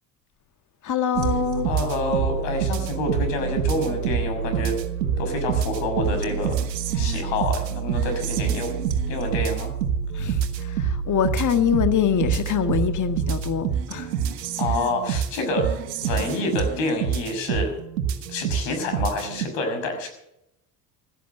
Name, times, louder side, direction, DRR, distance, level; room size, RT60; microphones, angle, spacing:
voice 1, 0.8-1.7 10.1-14.1, left 9 dB, 35° left, 1.7 m, -24 dB
sound 1, 1.1-19.5, right 7 dB, 75° right, 1.7 m, -27 dB
voice 2, 1.5-4.8 5.2-6.6 6.9-8.7 9.1-9.7 14.6-17.8 18.3-20.1, left 2 dB, 60° left, 6.1 m, -27 dB
16.5 x 13.0 x 6.6 m
figure-of-eight pair, 65°, 49 cm